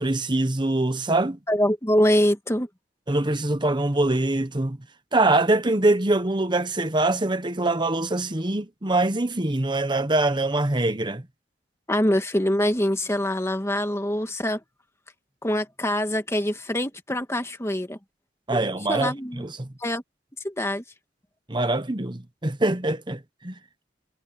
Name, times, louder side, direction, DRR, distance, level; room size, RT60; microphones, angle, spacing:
voice 1, 0.0-1.4 3.1-4.8 5.1-11.2 18.5-19.7 21.5-23.5, right 2 dB, 25° right, 1.1 m, -24 dB
voice 2, 1.5-2.7 11.9-14.6 15.4-18.0 18.5-18.6 18.9-19.5 19.8-20.0 20.4-20.8, left 1 dB, 15° left, 1.8 m, -24 dB
head